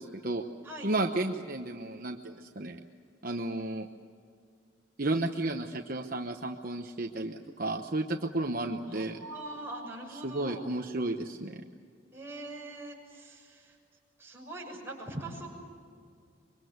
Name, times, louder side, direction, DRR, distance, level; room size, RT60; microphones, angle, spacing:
voice 1, 0.0-0.4 0.8-2.8 3.2-3.9 5.0-9.2 10.1-11.6, right 2 dB, 45° right, 4 dB, 1.0 m, -33 dB
voice 2, 8.8-10.6 12.1-13.7 14.2-15.5, right 2 dB, 10° right, -2 dB, 6.5 m, -42 dB
25.5 x 23.5 x 8.0 m, 2.3 s
head